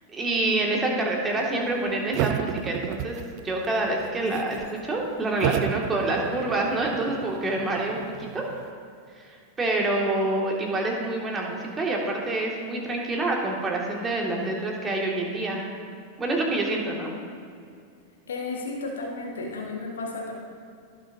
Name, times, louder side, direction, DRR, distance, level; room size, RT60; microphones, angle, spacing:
voice 1, 0.1-3.2 3.4-8.6 9.2-15.7 16.2-17.1, right 2 dB, 20° right, -1 dB, 1.9 m, -27 dB
sound 1, 2.1-3.7 4.0-4.7 5.4-8.7, right 12 dB, 45° right, 0.3 m, -32 dB
voice 2, 18.3-20.3, left 3 dB, 65° left, -1 dB, 1.5 m, -33 dB
17.0 x 6.3 x 2.7 m, 2.3 s
figure-of-eight pair, 90°, 0 cm